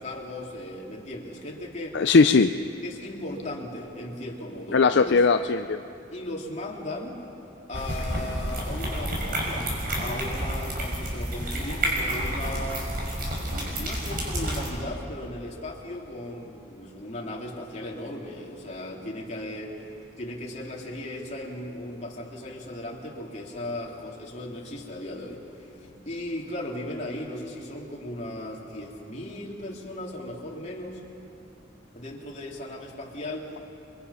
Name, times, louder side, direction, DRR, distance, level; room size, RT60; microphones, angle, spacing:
voice 1, 0.0-2.0 2.8-5.2 6.1-7.2 7.7-9.7 10.0-12.9 13.8-31.0 31.9-33.5, left 1 dB, 40° left, -2 dB, 3.2 m, -37 dB
voice 2, 1.9-2.5 4.7-5.8, left 4 dB, 65° left, 8 dB, 0.5 m, -19 dB
sound 1, 7.7-14.7, right 1 dB, 50° right, 6.0 m, -30 dB
30.0 x 23.0 x 5.7 m, 2.7 s
head